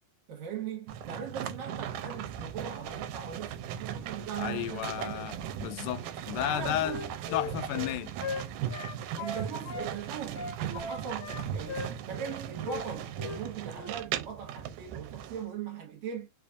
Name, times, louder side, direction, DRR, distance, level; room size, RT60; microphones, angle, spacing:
voice 1, 0.3-3.5 3.8-5.3 6.4-7.1 9.2-16.3, right 7 dB, 70° right, 2.1 m, -39 dB
sound 1, 0.9-15.4, right 9 dB, 85° right, 2.1 m, -38 dB
voice 2, 4.4-6.9 7.3-8.1, left 13 dB, 85° left, 2.1 m, -33 dB
Wind instrument woodwind instrument, 6.4-9.9 10.3-12.4 12.6-12.8 13.2-13.4 13.7-13.9, left 4 dB, 70° left, 2.2 m, -39 dB
4.9 x 2.4 x 2.4 m
omnidirectional pair, 3.6 m